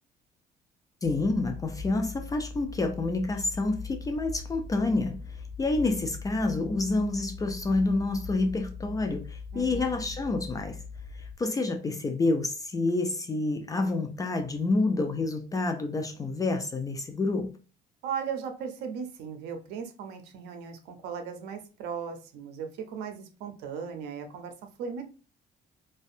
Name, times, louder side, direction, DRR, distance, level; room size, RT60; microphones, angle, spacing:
voice 1, 1.0-10.8 11.1-17.6, left 2 dB, 20° left, 0.4 m, -28 dB
sound 1, 1.0-11.3, left 4 dB, 15° right, 1.3 m, -41 dB
voice 2, 9.5-10.1 18.0-25.0, right 7 dB, 85° right, 0.5 m, -37 dB
2.5 x 2.2 x 2.4 m
cardioid pair, 110°, 17 cm